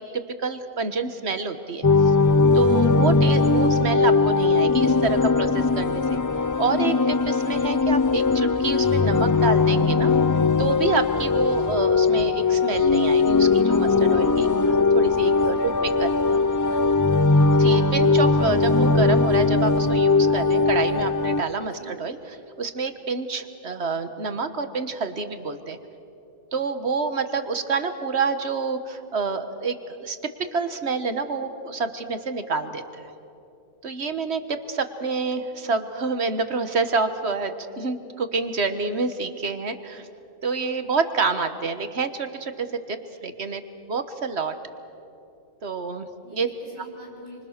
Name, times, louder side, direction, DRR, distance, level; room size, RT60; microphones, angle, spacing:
voice 1, 0.0-2.1 2.5-6.0 6.6-10.1 10.6-15.7 16.0-16.2 17.5-25.8 26.5-30.2 30.5-33.0 33.8-40.1 40.4-43.0 43.2-43.6 43.9-44.5 45.6-46.1 46.3-46.5, right 4 dB, 70° right, 9 dB, 1.6 m, -28 dB
sound 1, 1.8-21.4, left 4 dB, 30° left, 0.3 m, -20 dB
voice 2, 15.2-17.1 21.6-21.9 46.2-47.4, equal, 85° left, -3 dB, 7.5 m, -46 dB
28.0 x 25.0 x 6.6 m, 2.8 s
omnidirectional pair, 1.2 m